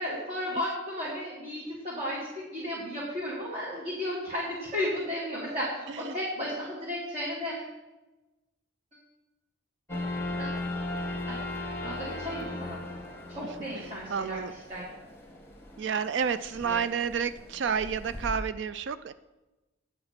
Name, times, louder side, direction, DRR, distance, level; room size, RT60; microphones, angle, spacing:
voice 1, 0.0-7.7 10.4-10.6 11.3-11.4 11.8-12.8 13.3-14.4 14.7-14.8 16.6-16.8, left 1 dB, 30° right, -6 dB, 2.2 m, -34 dB
sound 1, 9.9-18.4, left 2 dB, 10° left, 1.7 m, -38 dB
voice 2, 13.7-14.5 15.8-19.1, right 6 dB, 60° right, 14 dB, 0.3 m, -31 dB
9.3 x 8.6 x 5.8 m, 1.1 s
head